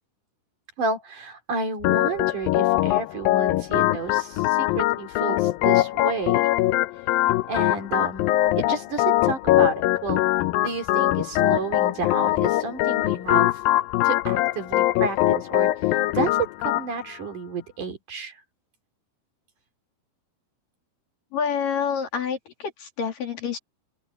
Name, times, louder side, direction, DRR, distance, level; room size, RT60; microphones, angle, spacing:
voice 1, 0.8-6.5 7.5-10.2 10.6-13.6 14.0-18.4, right 4 dB, 50° right, 4.5 m, -31 dB
Organ, 1.8-16.9, left 16 dB, 90° left, 2.0 m, -22 dB
voice 2, 21.3-23.6, left 7 dB, 55° left, 4.2 m, -28 dB
open air
omnidirectional pair, 5.1 m